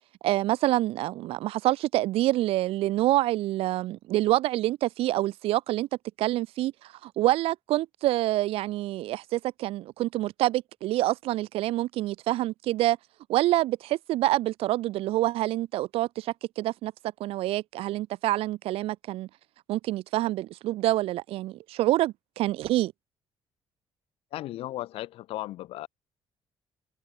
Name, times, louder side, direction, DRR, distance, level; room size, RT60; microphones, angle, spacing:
voice 1, 0.2-5.9 6.2-6.7 7.0-13.0 13.3-16.9 17.2-19.3 19.7-22.9, right 16 dB, 90° right, 0.8 m, -26 dB
voice 2, 24.3-25.9, left 15 dB, 90° left, 1.8 m, -36 dB
cardioid pair, 125°, 10 cm